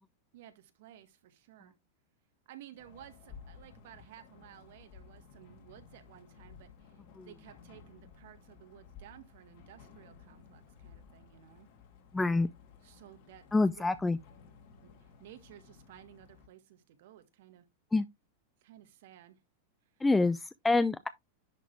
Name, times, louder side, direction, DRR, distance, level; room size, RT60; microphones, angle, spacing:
voice 1, 0.3-1.7 2.5-6.9 7.2-11.7 12.8-13.4 13.7-13.9 14.8-17.7 18.6-19.4, right 12 dB, 65° right, 1.7 m, -55 dB
sound 1, 2.8-16.5, left 6 dB, 60° left, 2.7 m, -56 dB
voice 2, 12.1-12.5 13.5-14.2 17.9-18.1 20.0-21.1, left 3 dB, 10° left, 0.5 m, -27 dB
10.5 x 4.0 x 3.3 m
hypercardioid pair, 100°, 0 cm